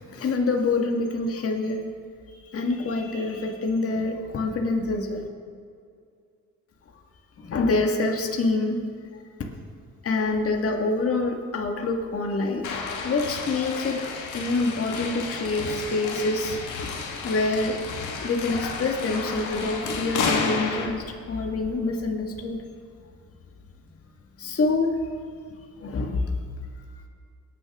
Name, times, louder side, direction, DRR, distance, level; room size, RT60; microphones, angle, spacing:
voice 1, 0.1-1.8 2.3-5.3 7.4-8.8 10.0-12.8 13.0-14.1 14.3-16.6 17.2-17.8 18.2-22.6 24.4-24.9 25.8-26.3, left 3 dB, 50° left, 1 dB, 1.7 m, -26 dB
sound 1, 12.6-20.9, left 5 dB, 80° left, 1.6 m, -31 dB
20.5 x 9.3 x 3.6 m, 2.3 s
cardioid pair, 90°, 30 cm